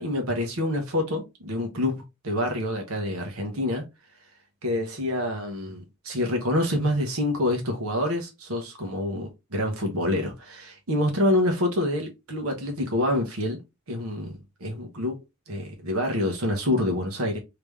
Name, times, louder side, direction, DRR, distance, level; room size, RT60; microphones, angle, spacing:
voice 1, 0.0-3.8 4.6-13.6 13.9-15.2 15.5-17.4, left 1 dB, 75° right, 1.1 m, -27 dB
3.4 x 2.9 x 3.4 m
head